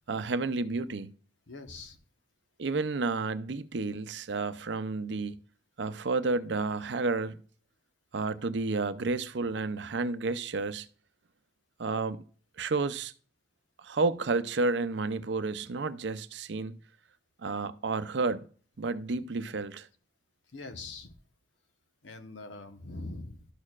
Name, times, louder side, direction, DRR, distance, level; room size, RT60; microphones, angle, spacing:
voice 1, 0.1-1.1 2.6-5.4 5.8-7.4 8.1-10.9 11.8-12.2 12.6-13.1 13.8-16.7 17.4-18.5 18.8-19.9, right 3 dB, 70° right, 0.5 m, -31 dB
voice 2, 1.5-2.0 20.5-21.2 22.0-23.4, left 2 dB, 85° left, 1.1 m, -42 dB
12.5 x 6.4 x 2.4 m
head